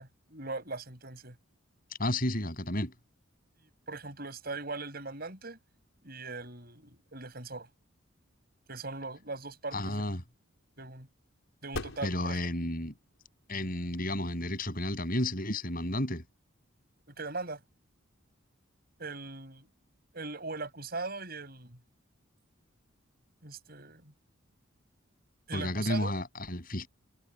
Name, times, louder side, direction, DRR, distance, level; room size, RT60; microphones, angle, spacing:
voice 1, 0.0-1.4 3.9-5.6 6.0-7.7 8.7-10.1 10.8-11.1 11.6-12.4 17.1-17.6 19.0-19.7 20.1-21.8 23.4-24.1 25.5-26.1, right 3 dB, 45° right, 6.9 m, -40 dB
voice 2, 2.0-2.9 9.7-10.2 12.0-12.9 13.5-16.2 25.5-26.9, left 1 dB, 45° left, 7.4 m, -32 dB
sound 1, 9.4-16.4, left 2 dB, 75° left, 5.0 m, -48 dB
head